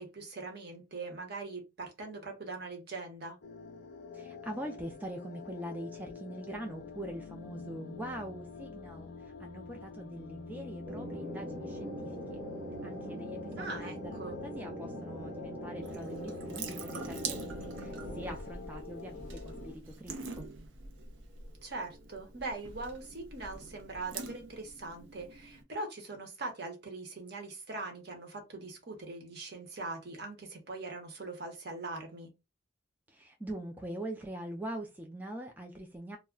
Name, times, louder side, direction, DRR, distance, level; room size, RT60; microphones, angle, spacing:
voice 1, 0.0-3.4 13.6-14.4 21.6-32.3, right 3 dB, 55° right, 0.9 m, -41 dB
sound 1, 3.4-19.7, left 4 dB, 65° left, 0.5 m, -47 dB
voice 2, 4.1-12.4 12.8-20.5 33.1-36.2, right 1 dB, 10° right, 0.3 m, -43 dB
sound 2, 10.9-18.3, equal, 30° right, 0.9 m, -42 dB
Water tap faucet / Sink (filling or washing) / Drip, 15.8-25.6, right 4 dB, 80° right, 0.6 m, -45 dB
2.3 x 2.1 x 3.6 m
head